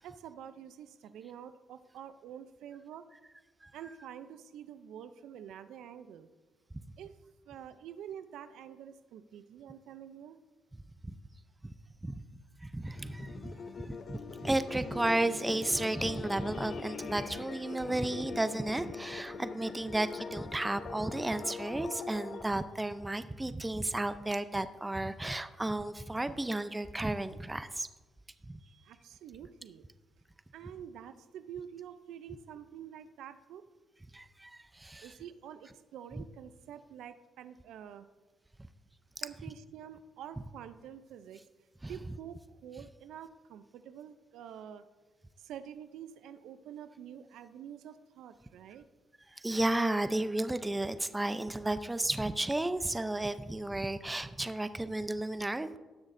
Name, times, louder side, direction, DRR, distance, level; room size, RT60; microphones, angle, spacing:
voice 1, 0.0-3.1 3.7-6.3 7.0-7.1 7.5-10.4 28.6-29.9 30.5-33.7 35.0-38.1 39.2-41.4 41.9-44.8 45.4-48.9, right 9 dB, 80° right, 12 dB, 0.5 m, -47 dB
voice 2, 12.6-13.6 13.8-27.9 28.5-28.6 34.1-35.0 41.8-41.9 49.4-55.8, right 1 dB, 15° right, 12 dB, 0.5 m, -33 dB
sound 1, 12.8-22.4, left 5 dB, 55° left, 0.6 m, -42 dB
18.5 x 6.4 x 2.6 m, 1.2 s
cardioid pair, 90°, 0 cm